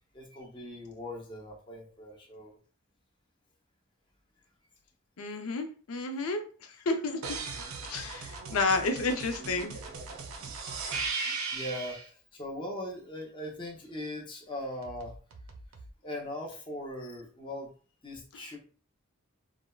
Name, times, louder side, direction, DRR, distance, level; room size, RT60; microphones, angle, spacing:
voice 1, 0.0-2.6 7.9-8.3 10.4-10.5 11.0-15.1 16.0-17.7 18.0-18.6, left 1 dB, 25° left, -1 dB, 0.7 m, -40 dB
voice 2, 5.2-6.4 6.9-7.2 7.9-9.8, left 3 dB, 85° left, 6 dB, 0.5 m, -30 dB
sound 1, 7.2-12.1 14.8-15.9, right 4 dB, 75° right, 0.5 m, -38 dB
3.3 x 2.0 x 2.2 m, 0.38 s
head